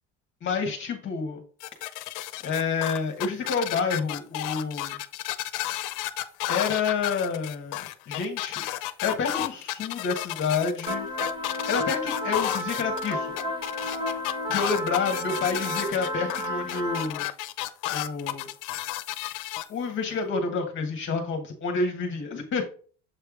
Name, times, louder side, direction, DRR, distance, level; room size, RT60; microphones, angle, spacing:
voice 1, 0.4-1.4 2.4-5.0 6.5-11.1 11.5-13.6 14.5-17.3 17.9-18.5 19.7-22.7, left 5 dB, 40° left, 3 dB, 1.4 m, -29 dB
sound 1, 1.6-19.6, left 15 dB, 80° left, 0.7 m, -32 dB
sound 2, 10.9-17.1, left 1 dB, 15° right, 0.8 m, -32 dB
7.7 x 3.3 x 4.9 m, 0.40 s
cardioid pair, 155°, 30 cm